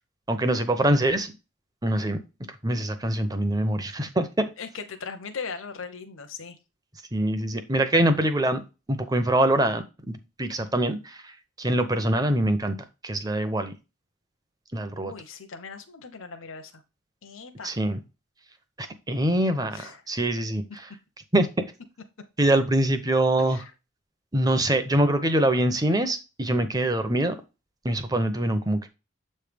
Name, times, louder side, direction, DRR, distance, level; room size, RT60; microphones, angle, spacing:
voice 1, 0.3-1.3 1.8-2.2 2.6-4.5 7.1-8.6 8.9-11.3 11.6-12.8 13.0-13.7 14.7-15.1 17.6-18.0 18.8-20.9 21.3-21.5 22.4-23.6 24.3-27.3 27.8-28.9, right 1 dB, 20° right, 9 dB, 0.8 m, -24 dB
voice 2, 4.6-6.6 15.0-16.8 17.2-17.7 19.7-20.0 23.5-23.7, left 5 dB, 75° left, 6 dB, 0.8 m, -39 dB
7.6 x 3.3 x 5.1 m, 0.27 s
head